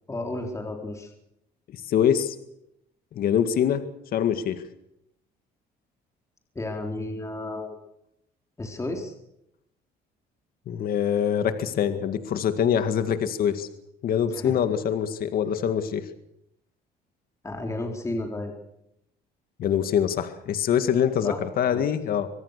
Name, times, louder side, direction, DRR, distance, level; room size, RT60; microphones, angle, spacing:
voice 1, 0.1-1.1 6.6-7.8 8.6-9.1 14.3-14.6 17.4-18.5 21.2-21.4 21.7-21.8, left 2 dB, 15° left, 2 dB, 4.1 m, -32 dB
voice 2, 1.9-2.4 3.1-3.8 4.1-4.6 10.7-13.7 14.0-16.1 19.6-22.3, left 8 dB, 60° left, 9 dB, 2.0 m, -24 dB
25.0 x 21.0 x 6.7 m, 0.81 s
cardioid pair, 110°, 17 cm